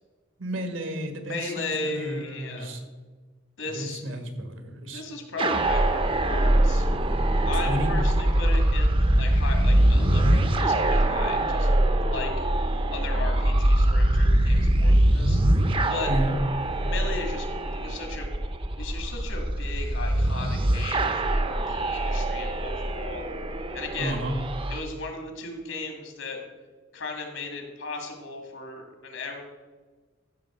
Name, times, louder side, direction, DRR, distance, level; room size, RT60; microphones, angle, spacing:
voice 1, 0.4-2.8 3.6-5.0 7.5-7.9 16.1-16.3 20.1-20.2 24.0-24.4, right 1 dB, 75° right, 5 dB, 1.7 m, -32 dB
voice 2, 1.3-2.7 3.6-4.0 4.9-6.9 7.4-11.7 12.0-12.5 12.9-15.4 15.9-16.1 16.8-17.5 17.8-18.3 18.8-23.3 23.7-24.2 24.7-26.4 26.9-29.4, left 3 dB, 75° left, 2 dB, 2.3 m, -36 dB
sound 1, 5.4-24.8, right 1 dB, 25° right, 0.7 m, -23 dB
14.0 x 6.9 x 4.5 m, 1.3 s
head